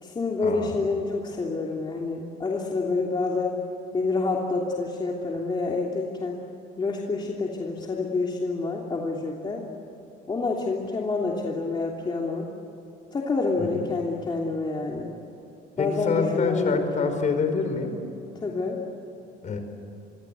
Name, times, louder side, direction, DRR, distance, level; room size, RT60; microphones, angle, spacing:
voice 1, 0.0-3.5 3.9-6.4 6.8-9.6 10.3-12.5 13.1-15.1 15.8-17.1 18.4-18.8, left 3 dB, 25° left, -1 dB, 3.0 m, -28 dB
voice 2, 15.8-18.0 19.4-19.6, left 5 dB, 45° left, 7 dB, 5.1 m, -26 dB
26.5 x 23.5 x 8.3 m, 3.0 s
cardioid pair, 110°, 17 cm